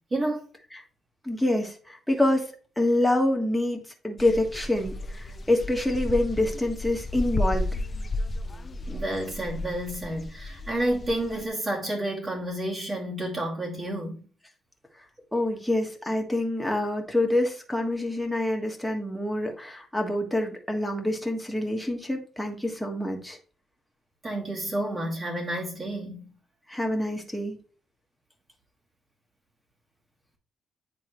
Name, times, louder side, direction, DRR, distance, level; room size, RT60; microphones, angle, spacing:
voice 1, 0.1-0.5 8.9-14.2 24.2-26.3, right 1 dB, 35° right, 2.4 m, -30 dB
voice 2, 1.2-7.7 15.3-23.4 26.7-27.5, left 1 dB, 5° left, 1.5 m, -26 dB
sound 1, 4.2-11.5, left 1 dB, 35° left, 0.6 m, -33 dB
9.5 x 3.8 x 3.1 m
cardioid pair, 90°, 0 cm